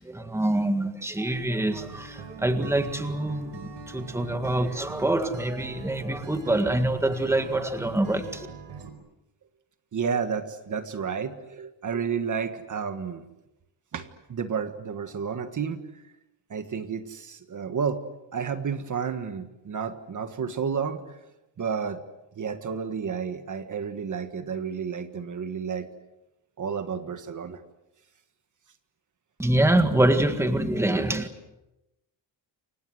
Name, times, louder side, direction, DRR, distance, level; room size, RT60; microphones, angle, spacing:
voice 1, 0.0-8.5 29.4-31.3, right 1 dB, 5° right, 7 dB, 1.8 m, -25 dB
Acoustic guitar, 1.7-8.9, right 4 dB, 65° right, 4.7 m, -42 dB
voice 2, 9.9-13.2 13.9-15.8 16.5-18.0 18.3-21.0 21.6-22.0 22.4-25.9 26.6-27.6, right 6 dB, 40° right, 8 dB, 1.6 m, -31 dB
29.5 x 25.0 x 7.9 m, 0.95 s
wide cardioid pair, 175°, 45 cm